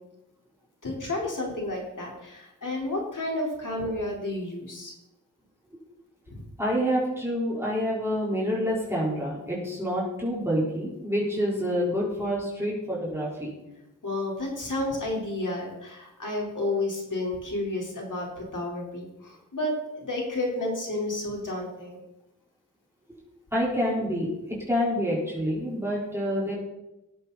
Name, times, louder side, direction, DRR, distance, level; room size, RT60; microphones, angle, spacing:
voice 1, 0.8-4.9 6.3-6.4 14.0-22.0, left 2 dB, 75° left, -2 dB, 4.1 m, -31 dB
voice 2, 6.6-13.5 23.5-26.5, equal, 10° right, -6 dB, 4.1 m, -27 dB
19.0 x 8.1 x 4.1 m, 0.92 s
wide cardioid pair, 60°, 32 cm